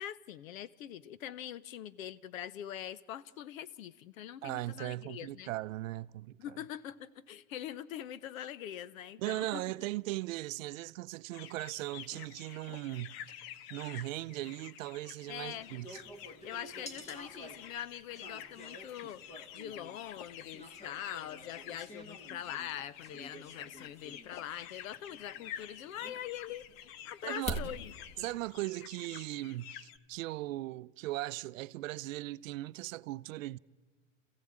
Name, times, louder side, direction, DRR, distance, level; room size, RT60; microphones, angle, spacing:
voice 1, 0.0-5.5 6.4-9.6 15.3-15.7 16.4-19.2 19.5-26.6 27.0-28.3, left 11 dB, 75° left, 0.9 m, -43 dB
voice 2, 4.4-6.4 9.2-13.2 13.7-16.0 27.2-27.6 28.2-33.6, right 17 dB, 70° right, 0.6 m, -38 dB
sound 1, 11.3-30.0, left 10 dB, 45° left, 0.9 m, -50 dB
sound 2, 15.4-28.4, equal, 15° left, 1.7 m, -47 dB
27.5 x 15.5 x 8.7 m
supercardioid pair, 145°, 41 cm